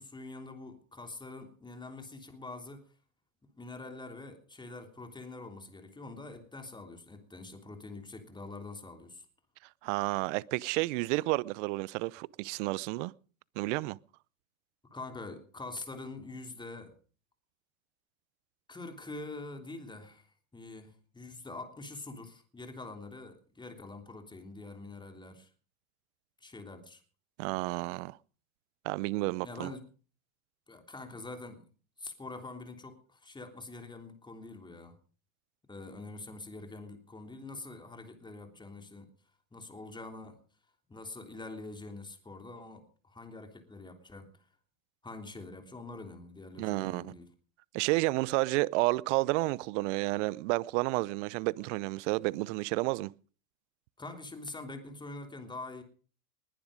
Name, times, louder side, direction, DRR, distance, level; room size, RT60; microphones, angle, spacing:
voice 1, 0.0-2.9 3.6-9.3 14.9-17.0 18.7-20.3 20.5-25.5 26.4-27.0 29.4-29.8 30.7-31.7 32.0-35.0 35.7-39.1 39.5-40.4 40.9-44.3 45.0-47.3 54.0-55.8, left 2 dB, 10° left, 3.3 m, -45 dB
voice 2, 9.8-13.1 13.6-14.0 27.4-28.2 28.8-29.7 46.6-47.1 47.7-53.1, right 22 dB, 65° right, 0.7 m, -31 dB
20.5 x 11.0 x 5.1 m
hypercardioid pair, 105°, 40 cm